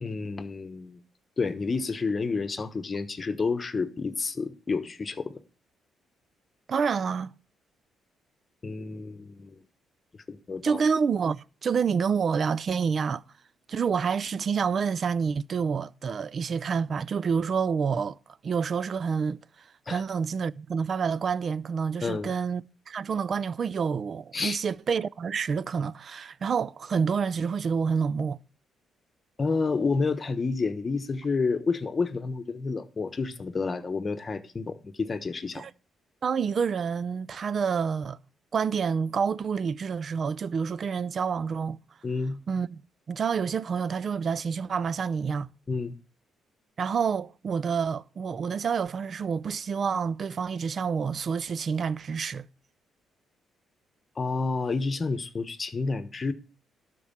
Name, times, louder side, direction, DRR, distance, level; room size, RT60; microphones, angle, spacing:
voice 1, 0.0-1.0 1.4-5.4 8.6-9.6 10.3-10.8 19.9-20.0 22.0-22.3 24.3-24.6 29.4-35.7 42.0-42.4 45.7-45.9 54.2-56.3, left 4 dB, 35° left, 1.1 m, -29 dB
voice 2, 6.7-7.3 10.6-13.2 13.7-18.2 18.4-19.4 19.9-28.4 35.6-35.7 36.2-38.2 38.5-41.8 42.5-42.8 43.1-45.5 46.8-52.5, right 6 dB, 50° right, 0.4 m, -28 dB
12.0 x 4.6 x 7.4 m
cardioid pair, 90°, 0 cm